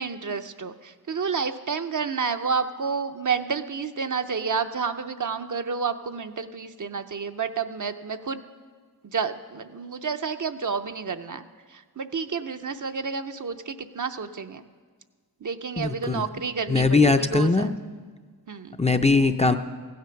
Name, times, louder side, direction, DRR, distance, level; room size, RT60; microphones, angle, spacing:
voice 1, 0.0-8.4 9.0-14.6 15.4-17.8 18.5-18.8, right 5 dB, 55° right, 8 dB, 0.6 m, -30 dB
voice 2, 15.8-16.3 16.7-17.7 18.8-19.6, left 3 dB, 20° left, 7 dB, 0.5 m, -20 dB
15.5 x 9.4 x 5.8 m, 1.6 s
wide cardioid pair, 65°, 38 cm